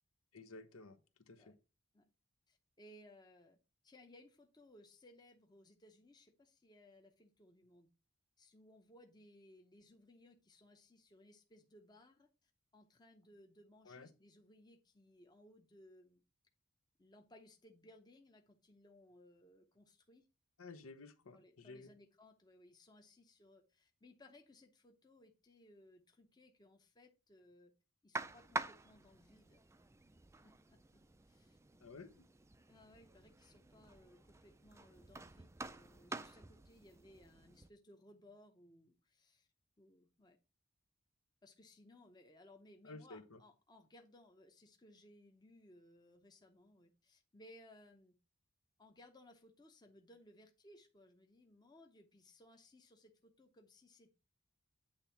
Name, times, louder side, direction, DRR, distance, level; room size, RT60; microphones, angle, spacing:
voice 1, 0.3-1.0 1.3-1.5 13.8-14.1 20.6-21.9 31.8-32.3 42.8-43.4, left 3 dB, 80° left, 1.0 m, -53 dB
voice 2, 2.5-3.6 3.8-7.9 8.4-16.2 17.0-20.3 21.3-27.7 28.0-29.6 30.4-31.6 32.7-39.5 39.8-40.4 41.4-48.2 48.8-54.1, left 1 dB, 20° left, 0.7 m, -63 dB
sound 1, 28.1-37.7, right 3 dB, 15° right, 0.4 m, -48 dB
8.8 x 3.6 x 5.7 m
head